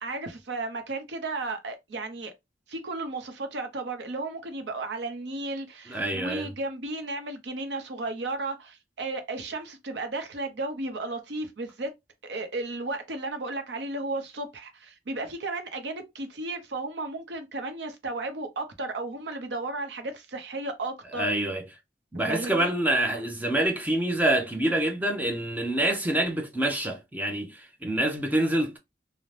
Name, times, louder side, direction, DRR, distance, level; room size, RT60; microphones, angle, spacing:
voice 1, 0.0-2.3 2.7-11.9 12.2-21.3 22.3-22.7, right 2 dB, 80° right, 0.6 m, -34 dB
voice 2, 5.9-6.5 21.2-21.6 22.1-28.8, right 1 dB, 10° right, 0.4 m, -26 dB
2.6 x 2.0 x 3.1 m
head